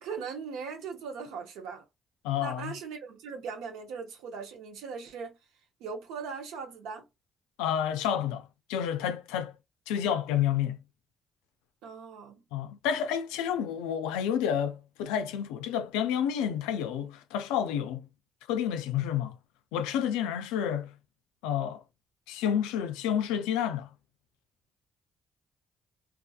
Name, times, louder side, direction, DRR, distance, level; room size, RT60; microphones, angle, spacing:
voice 1, 0.0-1.8 2.4-5.4 5.8-7.1 11.8-12.4, right 5 dB, 85° right, 0.7 m, -39 dB
voice 2, 2.2-2.8 7.6-9.6 9.9-10.8 12.5-18.1 18.5-19.4 19.7-20.9 21.4-21.8 22.3-23.9, left 9 dB, 90° left, 0.3 m, -30 dB
2.6 x 2.4 x 2.3 m
supercardioid pair, 55°, 0 cm